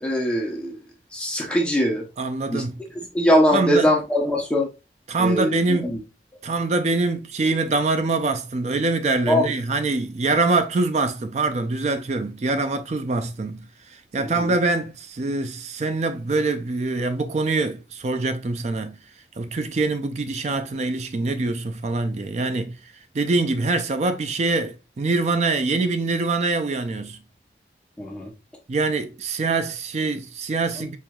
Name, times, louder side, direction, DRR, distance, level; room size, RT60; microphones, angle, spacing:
voice 1, 0.0-0.8 1.1-2.0 2.5-2.6 3.1-4.7 5.2-6.0 9.3-9.5 14.2-14.5 28.0-28.3 30.8-30.9, equal, 5° left, 0.7 m, -21 dB
voice 2, 2.2-2.8 3.5-3.9 5.1-5.9 6.4-13.7 14.1-19.0 19.4-22.8 23.1-27.2 28.7-31.0, right 3 dB, 40° right, 0.4 m, -24 dB
4.5 x 3.1 x 2.3 m
head